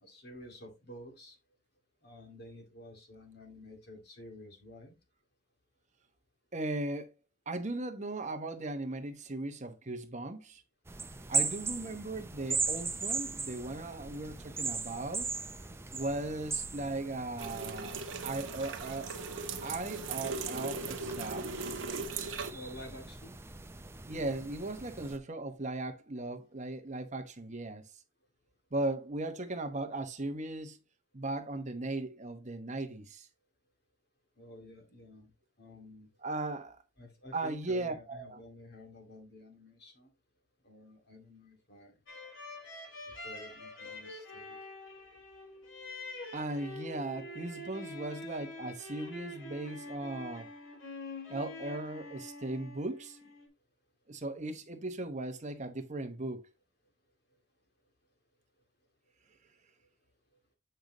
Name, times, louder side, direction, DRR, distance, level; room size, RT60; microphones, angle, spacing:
voice 1, 0.0-1.4 2.0-4.9 22.5-23.4 34.4-35.3 35.6-36.1 37.0-40.1 40.6-41.9 43.2-44.6, left 1 dB, 55° left, 2.4 m, -51 dB
voice 2, 6.5-7.1 7.5-10.6 11.3-15.3 15.9-18.0 18.2-19.1 19.6-21.5 24.1-27.8 28.7-30.8 31.1-33.3 36.2-36.8 37.3-38.4 46.3-50.5 51.3-53.2 54.1-56.5, right 2 dB, 40° right, 1.0 m, -37 dB
sound 1, 10.9-25.2, right 4 dB, 15° right, 0.5 m, -39 dB
sound 2, 17.4-22.5, right 4 dB, 75° right, 1.0 m, -39 dB
sound 3, 42.1-53.5, left 2 dB, 80° left, 2.4 m, -46 dB
8.0 x 5.2 x 3.0 m
head